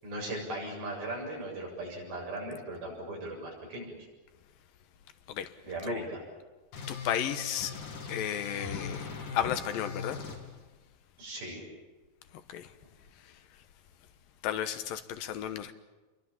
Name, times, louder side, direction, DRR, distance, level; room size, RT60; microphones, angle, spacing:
voice 1, 0.0-4.0 5.6-6.2 11.2-11.6, right 1 dB, 85° right, -1 dB, 9.3 m, -38 dB
sound 1, 6.7-10.4, left 5 dB, 60° left, 4.2 m, -40 dB
voice 2, 6.9-7.7 8.1-9.0 9.3-10.2 12.5-12.7 14.4-15.7, left 10 dB, 75° left, 10 dB, 2.8 m, -33 dB
30.0 x 23.0 x 7.3 m, 1.2 s
omnidirectional pair, 4.2 m